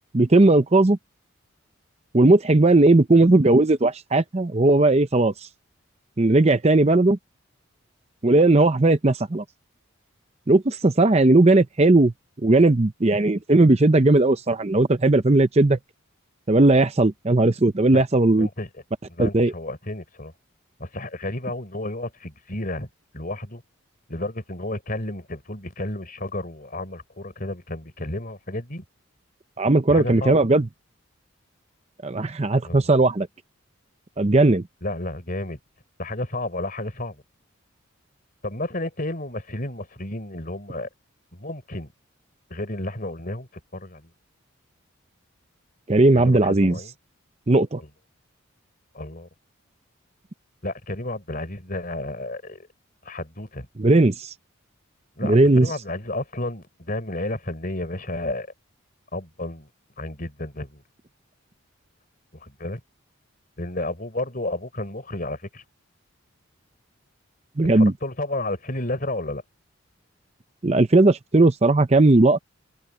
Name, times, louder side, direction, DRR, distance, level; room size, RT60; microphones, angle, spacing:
voice 1, 0.1-1.0 2.1-5.3 6.2-7.2 8.2-9.4 10.5-12.1 12.4-15.8 16.5-18.5 19.2-19.5 29.6-30.7 32.0-33.3 34.2-34.6 45.9-46.8 47.5-47.8 53.8-54.3 55.2-55.7 67.6-67.9 70.6-72.4, right 2 dB, 30° right, 0.6 m, -17 dB
voice 2, 18.4-18.7 19.1-20.3 20.8-22.9 23.1-23.6 24.1-28.8 29.9-30.4 32.6-32.9 34.8-35.6 36.0-37.2 38.4-40.9 41.3-41.9 42.5-44.1 46.1-46.9 47.8-47.9 48.9-49.3 50.6-52.7 53.0-53.7 55.2-58.5 59.1-59.7 60.0-60.8 62.3-62.8 63.6-65.6 67.7-69.4, left 1 dB, 40° left, 3.9 m, -32 dB
head